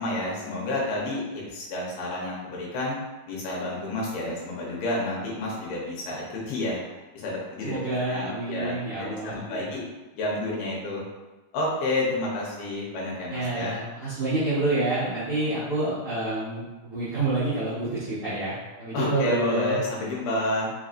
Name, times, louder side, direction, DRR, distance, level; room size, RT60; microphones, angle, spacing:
voice 1, 0.0-3.0 3.3-6.8 7.1-9.8 10.1-11.0 11.5-13.7 18.9-20.7, left 1 dB, 75° left, -4 dB, 2.6 m, -30 dB
voice 2, 7.6-9.7 13.3-19.8, right 2 dB, 85° right, -12 dB, 1.2 m, -28 dB
5.7 x 2.7 x 2.4 m, 1.1 s
omnidirectional pair, 4.4 m